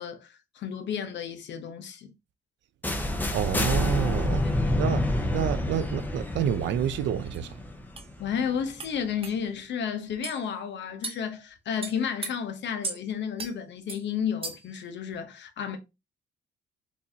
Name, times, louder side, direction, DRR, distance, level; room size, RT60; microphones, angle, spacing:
voice 1, 0.0-2.1 4.4-5.0 8.2-15.8, left 7 dB, 65° left, 0.8 m, -32 dB
sound 1, 2.8-8.7, left 1 dB, 10° left, 0.7 m, -28 dB
voice 2, 3.3-4.5 4.8-5.1 5.3-7.5, right 10 dB, 70° right, 0.5 m, -28 dB
sound 2, 7.3-7.4 8.0-8.1 8.8-8.9 9.2-9.4 10.2-10.4 11.0-11.2 11.8-12.3 12.8-13.0 13.4-13.5 13.9-14.0 14.4-14.7, right 3 dB, 30° right, 0.8 m, -36 dB
4.5 x 2.6 x 2.8 m
cardioid pair, 90°, 20 cm